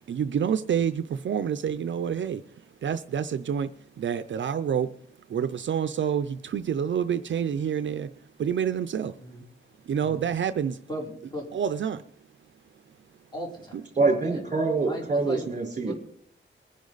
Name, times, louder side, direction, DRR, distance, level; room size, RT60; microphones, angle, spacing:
voice 1, 0.1-2.4 2.8-3.7 4.0-4.9 5.3-8.1 8.4-9.1 9.9-10.8 11.5-12.0, right 8 dB, 65° right, 11 dB, 0.5 m, -27 dB
voice 2, 10.9-11.5 13.3-13.8 14.8-15.4 15.8-15.9, equal, 20° left, -2 dB, 4.4 m, -37 dB
voice 3, 14.0-15.9, right 3 dB, 35° right, 0 dB, 4.1 m, -25 dB
21.5 x 10.5 x 4.0 m, 0.64 s
wide cardioid pair, 155°, 21 cm